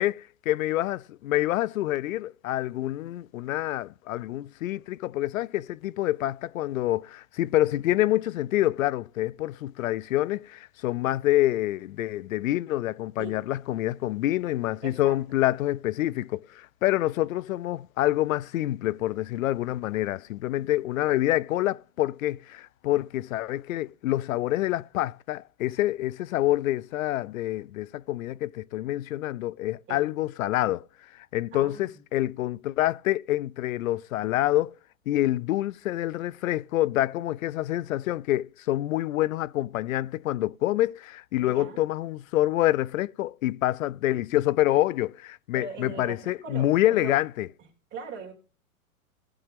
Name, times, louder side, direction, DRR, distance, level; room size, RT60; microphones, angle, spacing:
voice 1, 0.0-30.8 31.3-34.7 35.1-47.5, left 15 dB, 65° left, 0.5 m, -27 dB
voice 2, 14.8-15.2 29.9-30.1 31.5-31.8 41.4-41.8 45.5-47.2 47.9-48.3, right 5 dB, 25° right, 3.4 m, -40 dB
19.0 x 7.0 x 3.5 m
hypercardioid pair, 125°, 44 cm